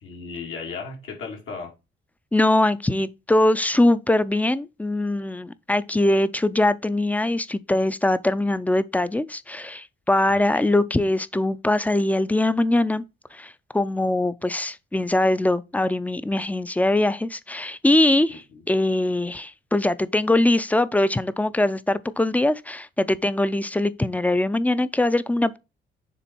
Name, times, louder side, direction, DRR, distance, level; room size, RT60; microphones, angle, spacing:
voice 1, 0.0-1.7 10.3-10.4 10.7-10.8 18.3-18.6, left 5 dB, 80° left, 2.6 m, -36 dB
voice 2, 2.3-13.0 13.3-25.6, left 1 dB, 5° left, 0.4 m, -22 dB
7.0 x 3.4 x 4.5 m
cardioid pair, 90°, 20 cm